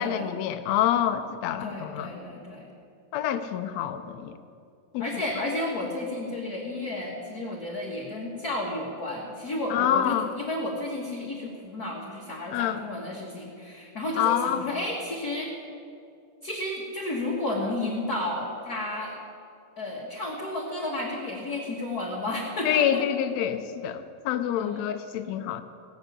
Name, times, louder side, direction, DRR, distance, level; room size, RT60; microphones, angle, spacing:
voice 1, 0.0-2.1 3.1-4.3 4.9-5.0 9.7-10.3 12.5-12.8 14.2-14.7 22.6-25.6, left 10 dB, 85° left, 9 dB, 1.5 m, -27 dB
voice 2, 1.6-2.7 5.0-15.5 16.4-19.2 19.8-23.0 24.6-24.8, left 1 dB, 40° left, -4 dB, 1.5 m, -32 dB
18.0 x 6.7 x 8.6 m, 2.4 s
omnidirectional pair, 3.8 m